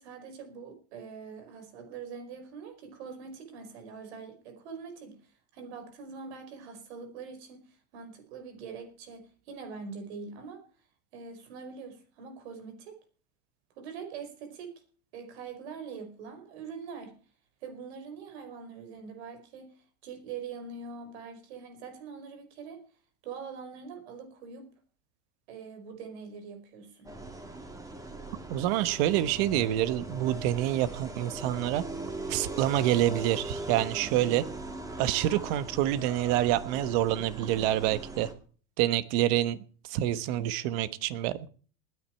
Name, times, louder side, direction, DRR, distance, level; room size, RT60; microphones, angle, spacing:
voice 1, 0.0-10.7 11.1-13.0 13.8-14.8 15.1-17.2 17.6-19.8 20.0-22.9 23.2-24.7 25.5-27.1, right 5 dB, 75° right, 4.8 m, -43 dB
sound 1, 27.0-38.3, right 2 dB, 10° right, 2.1 m, -40 dB
voice 2, 28.5-31.8 32.3-34.5 35.0-38.3 38.8-39.6 39.9-41.4, right 13 dB, 60° right, 1.3 m, -27 dB
20.0 x 9.7 x 4.5 m
supercardioid pair, 135°, 33 cm